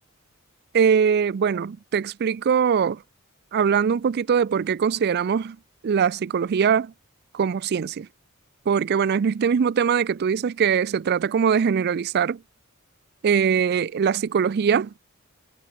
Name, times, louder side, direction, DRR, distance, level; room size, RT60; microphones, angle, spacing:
voice 1, 0.7-3.0 3.5-5.6 5.8-6.9 7.3-8.1 8.7-12.4 13.2-14.9, right 7 dB, 50° right, 0.4 m, -22 dB
head